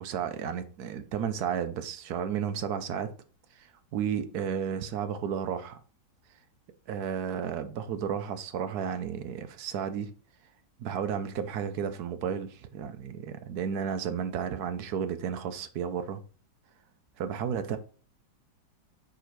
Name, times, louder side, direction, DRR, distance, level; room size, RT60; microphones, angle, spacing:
voice 1, 0.0-3.1 3.6-5.8 6.9-10.1 10.8-16.2 17.2-17.8, right 8 dB, 70° right, 1.1 m, -33 dB
5.0 x 4.8 x 4.6 m
omnidirectional pair, 1.9 m